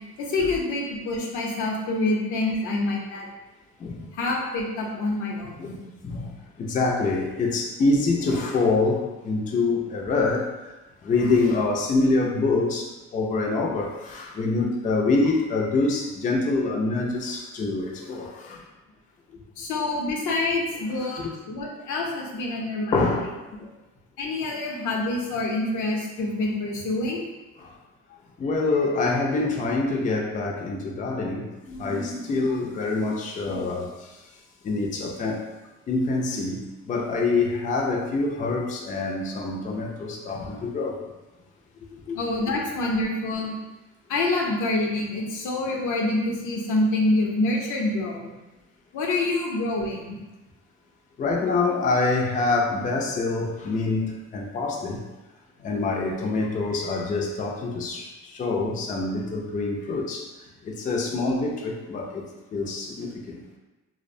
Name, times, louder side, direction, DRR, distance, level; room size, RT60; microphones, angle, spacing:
voice 1, 0.2-3.3 4.1-5.8 19.6-21.2 21.5-23.2 24.2-27.2 42.1-43.5 44.1-48.3 48.9-50.2, left 2 dB, 80° left, -1 dB, 0.6 m, -26 dB
voice 2, 3.8-4.1 5.6-5.7 6.0-10.7 11.0-18.7 19.3-19.4 21.0-21.3 22.9-23.7 27.6-27.7 28.4-34.2 34.6-35.5 35.9-41.0 42.1-42.2 51.2-55.1 55.6-60.3 60.6-63.4, left 3 dB, 25° left, 0 dB, 0.3 m, -26 dB
2.3 x 2.1 x 2.6 m, 1.1 s
cardioid pair, 90°, 30 cm